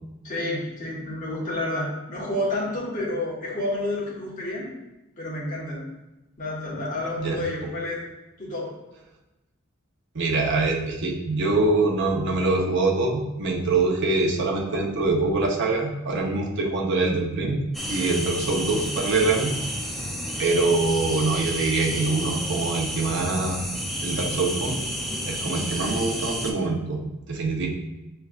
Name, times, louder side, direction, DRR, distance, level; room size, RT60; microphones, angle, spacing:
voice 1, 0.2-4.7 5.2-5.8 6.4-8.0 8.4-8.7, left 1 dB, 35° left, -5 dB, 1.3 m, -29 dB
voice 2, 10.1-17.6 17.9-19.5 20.4-23.6 24.0-24.8 25.3-27.0 27.3-27.7, right 3 dB, 55° right, -1 dB, 0.8 m, -24 dB
sound 1, 17.7-26.5, equal, ahead, 0.4 m, -30 dB
5.7 x 3.3 x 2.4 m, 0.98 s
head